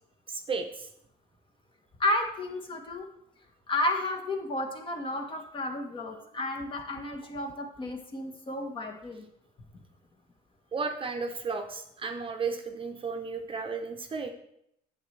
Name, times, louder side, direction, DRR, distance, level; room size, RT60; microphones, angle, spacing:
voice 1, 0.3-0.9 10.7-14.3, right 4 dB, 30° right, 5 dB, 0.8 m, -34 dB
voice 2, 2.0-3.0 3.7-9.3, left 1 dB, 30° left, 4 dB, 1.4 m, -32 dB
9.6 x 7.3 x 3.3 m, 0.75 s
cardioid pair, 110°, 17 cm